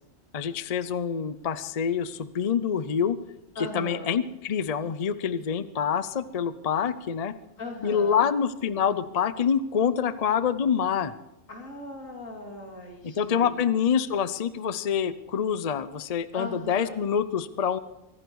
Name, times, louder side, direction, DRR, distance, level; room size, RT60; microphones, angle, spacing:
voice 1, 0.3-3.2 3.7-7.3 7.8-11.1 13.0-17.8, left 7 dB, 40° left, 14 dB, 0.6 m, -26 dB
voice 2, 3.5-4.1 7.6-8.3 11.5-13.6 14.0-14.1 16.3-16.9, left 2 dB, 85° left, 1 dB, 3.4 m, -39 dB
24.0 x 10.5 x 4.7 m, 0.88 s
omnidirectional pair, 1.3 m